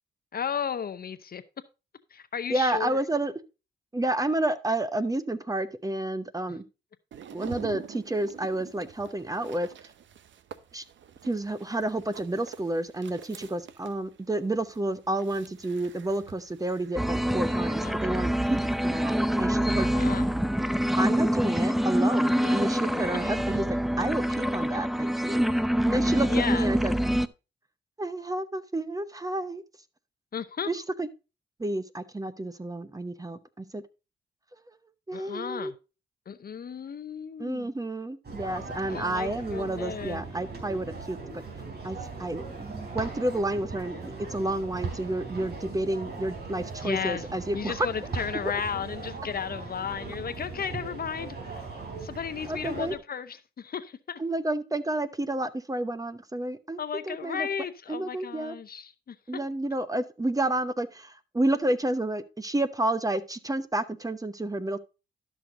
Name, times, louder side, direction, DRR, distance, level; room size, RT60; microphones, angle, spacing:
voice 1, 0.3-1.4 2.1-3.0 6.5-6.6 17.8-18.2 19.8-20.3 21.5-21.7 22.3-22.7 25.9-26.7 30.3-30.7 35.1-35.7 36.3-37.7 38.9-40.2 46.8-47.3 47.5-51.7 52.0-54.2 56.8-59.2, left 7 dB, 50° left, 0.7 m, -34 dB
voice 2, 2.5-3.3 3.9-6.6 7.3-9.7 10.7-10.8 11.3-19.9 21.0-23.6 24.0-25.4 25.8-26.9 28.0-29.6 30.7-31.1 31.6-33.8 35.1-35.7 37.4-41.2 41.8-47.7 52.5-52.9 54.2-56.8 57.1-57.5 57.9-58.6 59.3-64.8, right 1 dB, 20° right, 0.9 m, -30 dB
sound 1, 7.1-19.9, right 9 dB, 75° right, 0.8 m, -48 dB
sound 2, 17.0-27.3, equal, ahead, 0.5 m, -25 dB
sound 3, 38.2-53.0, right 4 dB, 55° right, 3.7 m, -39 dB
12.0 x 6.2 x 3.7 m
cardioid pair, 70°, 20 cm